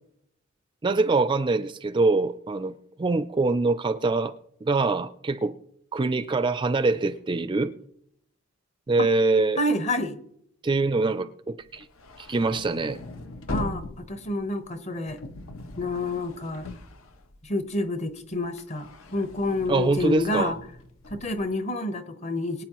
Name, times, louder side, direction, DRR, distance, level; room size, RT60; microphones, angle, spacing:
voice 1, 0.8-4.3 4.6-5.5 5.9-7.7 8.9-9.6 10.6-11.8 12.2-13.0 19.7-20.5, right 3 dB, 25° right, 0.4 m, -24 dB
voice 2, 9.6-10.2 13.5-15.2 15.8-16.7 17.4-20.6 21.1-22.6, left 2 dB, 35° left, 1.0 m, -28 dB
sound 1, 11.7-17.8 18.1-21.5, left 1 dB, 80° left, 1.0 m, -40 dB
22.5 x 8.8 x 3.0 m
head